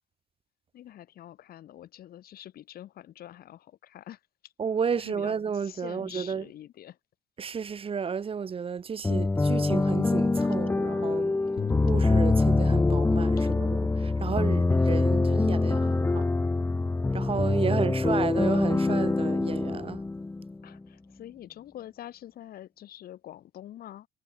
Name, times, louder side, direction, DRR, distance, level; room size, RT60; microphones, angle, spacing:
voice 1, 0.7-4.5 5.0-7.0 13.4-13.5 20.6-24.1, left 12 dB, 65° left, 3.8 m, -46 dB
voice 2, 4.6-6.4 7.4-11.3 11.8-16.3 17.1-20.0, right 6 dB, 35° right, 1.6 m, -32 dB
sound 1, 9.0-20.8, left 3 dB, 10° left, 0.7 m, -25 dB
sound 2, 11.6-17.8, left 7 dB, 35° left, 1.8 m, -37 dB
cardioid pair, 110°, 17 cm